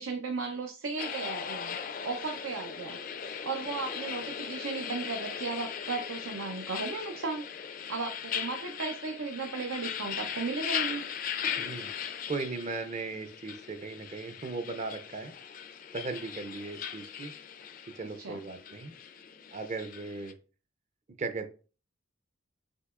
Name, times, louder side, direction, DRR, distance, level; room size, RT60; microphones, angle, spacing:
voice 1, 0.0-1.8 2.0-3.0 3.4-7.5 7.9-11.1 18.2-18.4, right 4 dB, 85° right, 4 dB, 0.6 m, -35 dB
sound 1, 1.0-20.3, left 8 dB, 45° left, 0.4 m, -39 dB
voice 2, 11.6-11.9 12.3-15.3 15.9-17.3 18.0-18.9 19.5-20.3 21.2-21.5, right 3 dB, 35° right, 9 dB, 0.5 m, -37 dB
6.4 x 2.9 x 2.4 m, 0.36 s
head